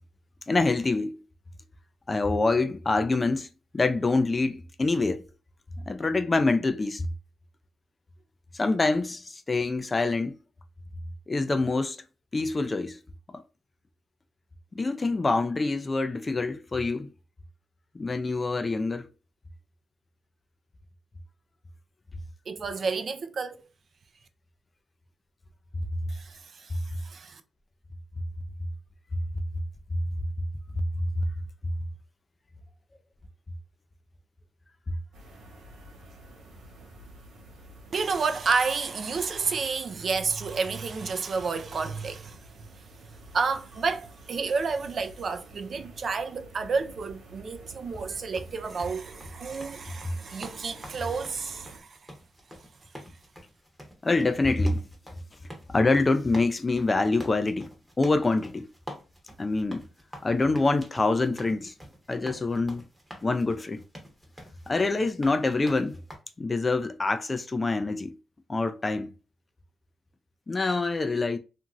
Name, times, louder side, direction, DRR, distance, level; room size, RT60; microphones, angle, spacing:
voice 1, 0.5-1.2 2.1-3.5 3.7-5.2 5.9-7.1 8.5-10.4 11.3-12.0 12.3-13.0 14.8-17.1 17.9-19.1 29.9-30.0 31.2-31.3 54.0-54.9 55.7-57.7 58.0-58.7 59.4-59.8 60.2-61.7 62.1-62.8 63.2-63.8 64.7-66.0 66.4-68.2 68.5-69.1 70.5-71.4, left 3 dB, 25° left, 0.3 m, -25 dB
voice 2, 22.5-23.6 26.1-27.4 37.9-42.4 43.3-52.0, right 5 dB, 50° right, 0.4 m, -30 dB
sound 1, 35.1-51.8, right 1 dB, 85° right, 0.8 m, -50 dB
sound 2, 47.9-66.2, equal, 5° right, 0.8 m, -47 dB
2.9 x 2.5 x 2.3 m
cardioid pair, 100°, 0 cm